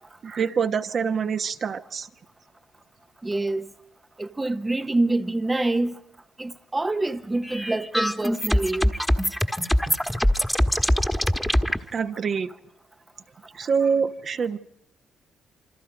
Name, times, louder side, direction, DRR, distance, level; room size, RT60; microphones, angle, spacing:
voice 1, 0.2-2.1 11.9-12.5 13.5-14.6, right 6 dB, 50° right, 1.1 m, -25 dB
voice 2, 3.2-3.7 4.2-6.0 6.4-8.9, right 2 dB, 15° right, 0.8 m, -26 dB
sound 1, 7.4-11.8, equal, 5° left, 1.4 m, -23 dB
27.5 x 25.0 x 5.2 m
cardioid pair, 90°, 0 cm